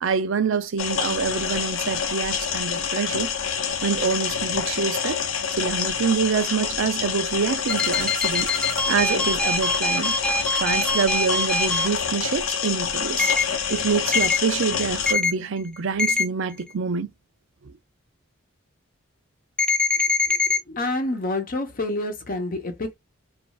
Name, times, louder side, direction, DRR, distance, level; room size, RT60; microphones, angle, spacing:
voice 1, 0.0-3.3 3.8-5.2 5.5-8.5 8.9-10.1 10.6-13.3 13.7-17.1 17.6-17.7, right 5 dB, 65° right, 0.5 m, -26 dB
sound 1, 0.8-15.1, left 7 dB, 75° left, 0.6 m, -27 dB
sound 2, 7.7-11.9 13.2-13.4 14.1-14.4 15.1-15.3 16.0-16.2 19.6-20.6, left 3 dB, 5° left, 0.3 m, -23 dB
voice 2, 20.3-22.9, left 2 dB, 45° left, 0.8 m, -28 dB
3.0 x 2.5 x 2.3 m
head